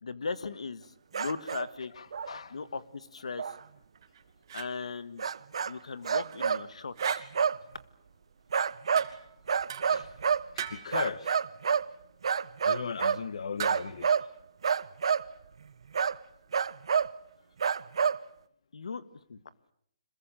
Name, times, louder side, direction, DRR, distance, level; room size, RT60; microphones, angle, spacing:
voice 1, 0.0-0.9 1.1-1.9 2.5-3.5 4.5-5.2 5.6-7.2 18.7-19.0 19.3-19.4, left 4 dB, 90° left, 1.7 m, -37 dB
sound 1, 1.1-1.7 2.1-2.4 3.4-3.6 5.2-5.7 6.0-6.6 7.0-7.6 8.5-9.1 9.5-10.5 10.9-11.9 12.2-13.3 13.6-14.3 14.6-15.3 15.9-16.2 16.5-17.1 17.6-18.2, right 6 dB, 65° right, 1.0 m, -28 dB
voice 2, 1.8-2.6 6.0-6.1 9.9-10.2 10.5-11.4 12.6-14.1, left 6 dB, 70° left, 1.5 m, -37 dB
sound 2, 4.0-4.8 6.1-6.5 7.0-7.2 9.0-9.4 9.7-10.2 10.6-11.0 13.6-14.0, right 9 dB, 40° right, 2.6 m, -40 dB
26.5 x 22.0 x 9.1 m
hypercardioid pair, 170°, 3 cm